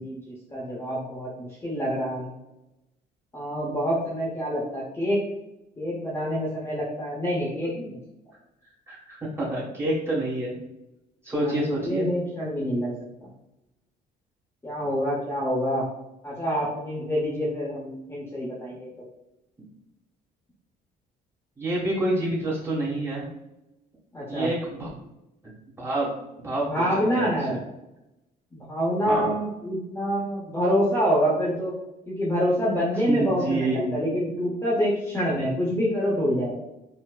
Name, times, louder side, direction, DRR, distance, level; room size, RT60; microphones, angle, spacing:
voice 1, 0.0-2.3 3.3-5.2 5.8-8.0 11.3-12.9 13.2-13.3 14.6-15.9 16.2-18.9 24.1-24.5 26.7-27.6 28.5-31.7 32.1-36.5, equal, 15° left, -6 dB, 0.8 m, -26 dB
voice 2, 8.9-10.5 11.2-12.1 21.6-23.3 24.3-24.9 25.4-25.5 25.8-26.1 26.4-26.9 27.2-27.6 29.1-29.3 33.1-34.0, right 1 dB, 15° right, -6 dB, 1.4 m, -27 dB
4.3 x 2.0 x 2.4 m, 0.93 s
cardioid pair, 110°, 17 cm